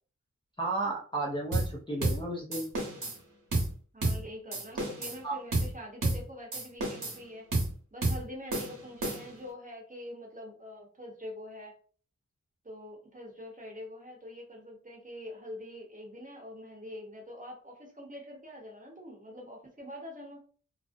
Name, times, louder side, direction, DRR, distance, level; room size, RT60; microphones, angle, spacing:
voice 1, 0.6-2.7 5.2-5.4, right 2 dB, 15° left, -5 dB, 0.5 m, -33 dB
sound 1, 1.5-1.7 2.0-2.2 2.5-3.2 3.5-3.7 4.0-4.2 4.5-5.2 5.5-5.7 6.0-6.2 6.5-7.2 7.5-7.7 8.0-8.2 8.5-9.4, right 2 dB, 75° right, 0.9 m, -31 dB
voice 2, 3.9-7.5 7.9-11.8 12.6-20.5, left 1 dB, 25° right, -1 dB, 0.8 m, -45 dB
2.4 x 2.0 x 2.4 m, 0.43 s
wide cardioid pair, 75°, 32 cm